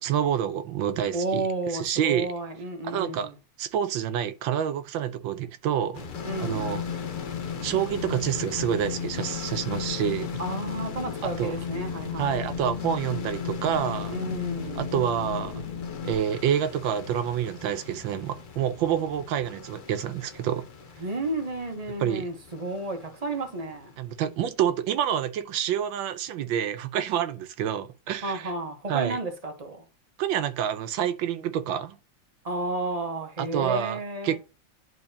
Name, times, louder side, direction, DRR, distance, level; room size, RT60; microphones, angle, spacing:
voice 1, 0.0-1.4 1.7-2.3 2.8-3.3 3.6-6.0 6.4-6.8 7.6-10.3 11.2-11.5 12.2-14.1 14.8-15.6 16.0-20.6 22.0-22.3 24.0-28.5 28.9-29.2 30.2-32.0 33.4-34.4, right 9 dB, 90° right, 1.4 m, -28 dB
voice 2, 1.1-3.3 6.2-6.8 10.4-12.4 14.1-14.9 21.0-23.9 28.2-29.9 32.4-34.4, right 2 dB, 30° right, 0.8 m, -32 dB
sound 1, 5.9-24.6, left 4 dB, 65° left, 0.5 m, -42 dB
Wind, 6.1-16.1, left 7 dB, 45° left, 1.3 m, -34 dB
10.5 x 3.9 x 2.8 m
omnidirectional pair, 2.1 m